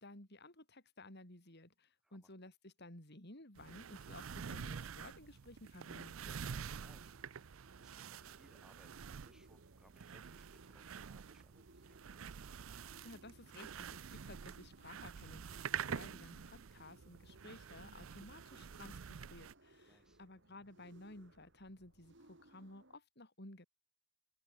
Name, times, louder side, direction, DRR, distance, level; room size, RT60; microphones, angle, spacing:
voice 1, 0.0-6.4 13.0-23.7, left 2 dB, 55° left, 6.1 m, -55 dB
sound 1, 3.6-19.5, right 7 dB, 80° right, 0.6 m, -47 dB
sound 2, 5.9-23.0, right 1 dB, 60° right, 5.7 m, -65 dB
voice 2, 6.8-8.9 9.2-12.3 19.8-20.2, equal, 5° right, 7.4 m, -69 dB
open air
head